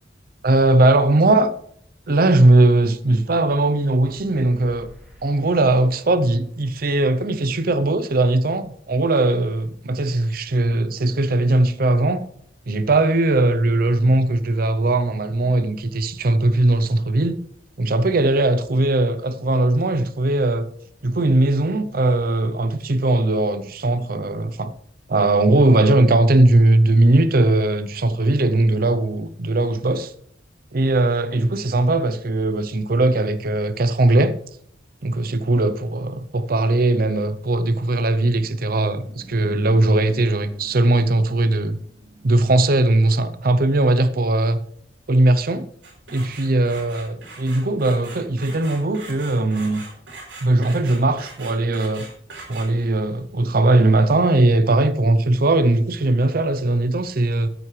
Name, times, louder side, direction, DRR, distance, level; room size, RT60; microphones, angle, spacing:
voice 1, 0.4-1.5 2.1-4.9 5.2-12.3 12.7-17.4 17.8-20.7 21.0-24.7 25.1-30.1 30.7-34.4 35.0-41.8 42.2-44.6 45.1-45.7 46.1-49.8 50.4-52.1 52.5-57.5, right 2 dB, 50° right, 0.7 m, -19 dB
sound 1, 3.8-6.4, equal, 5° right, 3.9 m, -50 dB
sound 2, 37.8-43.1, equal, 25° right, 2.5 m, -45 dB
sound 3, 45.8-53.0, right 3 dB, 90° right, 5.2 m, -40 dB
14.0 x 9.4 x 3.3 m
head